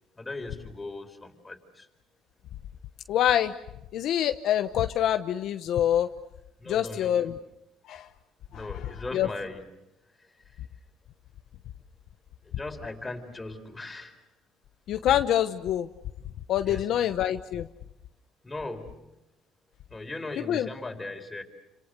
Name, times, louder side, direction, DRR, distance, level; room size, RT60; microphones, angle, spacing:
voice 1, 0.1-1.9 6.6-7.3 8.5-9.7 10.2-10.6 12.4-14.2 16.7-17.1 18.4-19.1 19.9-21.4, left 2 dB, 15° left, 4 dB, 4.4 m, -39 dB
voice 2, 3.1-3.5 3.9-6.1 6.7-7.3 7.8-8.1 8.5-8.6 9.1-9.3 14.9-15.9 16.5-17.7 20.5-20.7, left 11 dB, 65° left, 8 dB, 1.0 m, -25 dB
30.0 x 26.5 x 6.8 m, 0.92 s
cardioid pair, 110°, 0 cm